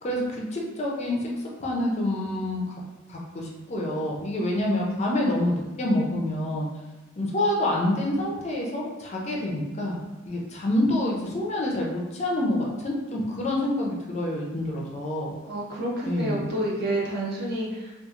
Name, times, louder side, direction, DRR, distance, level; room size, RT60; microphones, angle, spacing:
voice 1, 0.0-1.3 1.6-2.7 3.1-6.7 7.2-10.0 10.3-15.3 16.1-16.4, left 1 dB, 30° left, -2 dB, 0.4 m, -27 dB
voice 2, 15.4-17.9, right 1 dB, 50° right, -4 dB, 0.6 m, -29 dB
2.9 x 2.3 x 2.4 m, 1.2 s
head